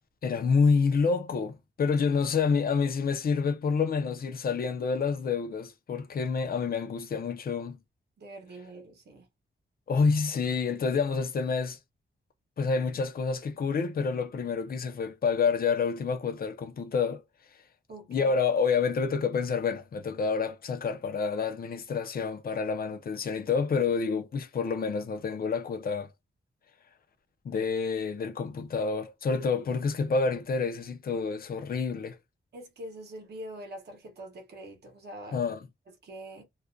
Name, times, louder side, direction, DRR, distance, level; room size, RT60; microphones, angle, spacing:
voice 1, 0.2-7.8 9.9-11.8 12.6-17.2 18.1-26.1 27.4-32.2 35.3-35.6, left 5 dB, 50° left, 0.5 m, -28 dB
voice 2, 8.2-9.3 17.9-18.4 32.5-35.4 36.0-36.4, right 1 dB, 55° right, 0.8 m, -44 dB
2.4 x 2.1 x 2.4 m
wide cardioid pair, 155°, 20 cm